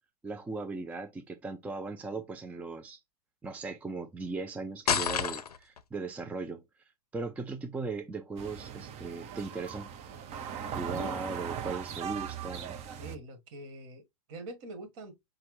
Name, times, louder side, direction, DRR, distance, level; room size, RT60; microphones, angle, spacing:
voice 1, 0.2-3.0 3.4-9.9 10.7-12.8, right 3 dB, 5° right, 0.4 m, -38 dB
sound 1, 4.9-5.8, left 7 dB, 90° left, 0.6 m, -29 dB
sound 2, 8.4-13.2, right 8 dB, 35° right, 0.9 m, -39 dB
voice 2, 10.9-11.2 13.0-14.0 14.3-15.2, right 2 dB, 50° right, 1.9 m, -44 dB
5.7 x 2.3 x 3.2 m
hypercardioid pair, 110°, 19 cm